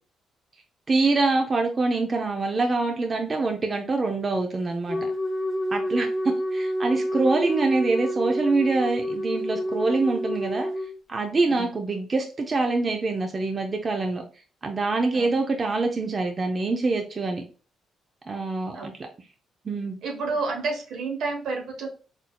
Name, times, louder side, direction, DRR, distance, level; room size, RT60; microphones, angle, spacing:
voice 1, 0.9-5.1 5.7-10.7 11.1-14.2 14.6-17.4 18.3-18.9 19.7-20.0, right 3 dB, 35° right, 2 dB, 0.5 m, -25 dB
Wind instrument woodwind instrument, 4.9-10.9, equal, 30° left, 0.7 m, -28 dB
voice 2, 20.0-21.9, right 3 dB, 75° right, 2 dB, 1.1 m, -30 dB
4.1 x 2.6 x 2.2 m, 0.37 s
cardioid pair, 90°, 0 cm